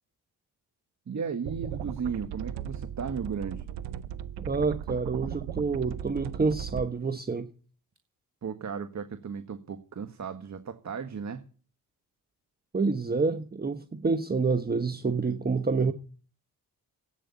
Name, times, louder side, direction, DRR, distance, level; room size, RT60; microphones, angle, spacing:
voice 1, 1.1-3.7 8.4-11.4, right 6 dB, 45° right, 1.7 m, -35 dB
sound 1, 1.5-6.9, right 10 dB, 85° right, 0.8 m, -37 dB
voice 2, 4.4-7.5 12.7-15.9, right 4 dB, 25° right, 1.2 m, -28 dB
12.5 x 9.3 x 9.4 m
supercardioid pair, 60°, 40 cm